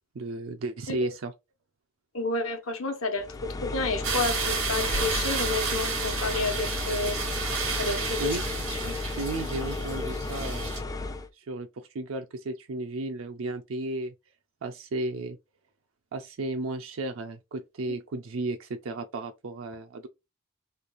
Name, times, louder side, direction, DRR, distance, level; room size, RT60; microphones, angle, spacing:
voice 1, 0.1-1.3 8.2-8.5 9.2-10.8 11.3-14.1 14.6-15.4 16.1-20.1, right 2 dB, 70° right, 0.5 m, -34 dB
voice 2, 2.1-7.2 7.8-8.4 8.8-8.9, left 3 dB, 80° left, 1.0 m, -30 dB
sound 1, 3.2-11.3, left 3 dB, 15° left, 0.3 m, -33 dB
sound 2, 4.0-10.8, right 5 dB, 85° right, 1.4 m, -32 dB
3.3 x 2.3 x 4.0 m
head